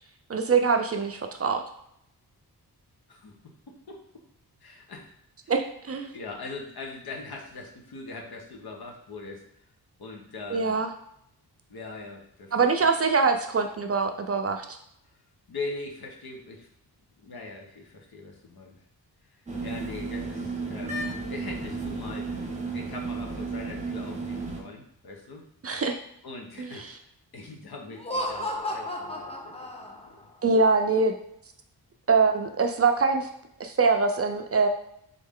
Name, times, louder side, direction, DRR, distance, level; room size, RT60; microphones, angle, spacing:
voice 1, 0.3-1.6 5.5-6.1 10.5-10.9 12.5-14.7 25.6-26.0 26.6-26.7 30.4-31.1 32.1-33.3 33.6-34.7, right 4 dB, 35° right, 5 dB, 0.4 m, -23 dB
voice 2, 3.1-4.2 4.6-5.1 5.4-5.5 6.1-9.4 10.0-10.8 11.7-12.5 15.5-16.7 17.2-18.8 19.6-21.0 21.3-22.3 22.7-25.5 26.2-29.7 30.0-30.3, left 3 dB, 65° left, 1 dB, 1.0 m, -41 dB
sound 1, 19.5-24.6, right 3 dB, 20° right, 0.9 m, -33 dB
Laughter, 27.9-30.2, left 1 dB, 15° left, 0.7 m, -33 dB
3.9 x 3.2 x 3.6 m, 0.74 s
wide cardioid pair, 85°, 40 cm